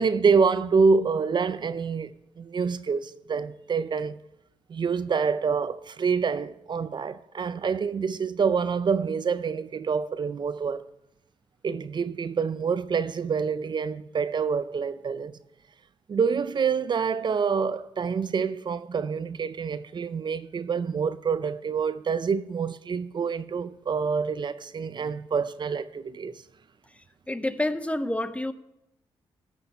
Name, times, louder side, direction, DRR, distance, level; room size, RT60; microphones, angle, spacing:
voice 1, 0.0-2.1 2.4-4.2 4.7-10.8 11.6-15.4 16.1-26.3, right 5 dB, 50° right, 0.5 m, -26 dB
voice 2, 27.3-28.5, left 1 dB, 10° left, 0.6 m, -28 dB
14.0 x 6.3 x 5.4 m
cardioid pair, 65°, 10 cm